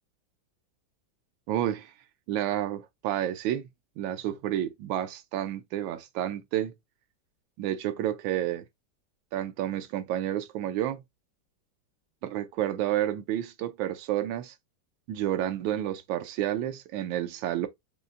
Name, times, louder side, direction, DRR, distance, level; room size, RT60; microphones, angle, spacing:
voice 1, 1.5-1.9 2.3-3.7 4.0-6.7 7.6-8.6 9.3-11.0 12.2-14.5 15.1-17.7, right 12 dB, 85° right, 1.3 m, -30 dB
5.4 x 2.1 x 2.3 m
omnidirectional pair, 2.1 m